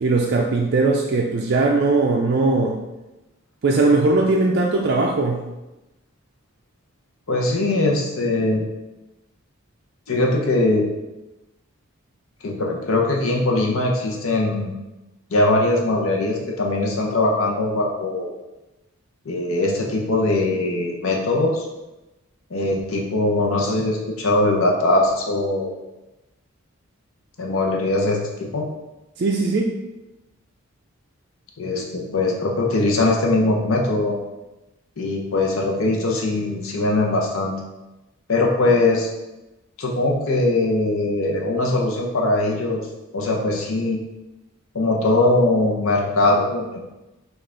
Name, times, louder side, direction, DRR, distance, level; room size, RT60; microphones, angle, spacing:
voice 1, 0.0-2.8 3.6-5.5 29.2-29.7, right 3 dB, 50° right, -1 dB, 0.4 m, -19 dB
voice 2, 7.3-8.6 10.1-10.9 12.4-14.7 15.3-18.3 19.3-21.7 22.5-25.7 27.4-28.6 31.6-34.2 35.0-37.5 38.3-39.1 39.8-42.9 43.1-44.0 44.7-46.8, left 2 dB, 75° left, 0 dB, 0.7 m, -21 dB
5.3 x 2.4 x 3.7 m, 1.0 s
head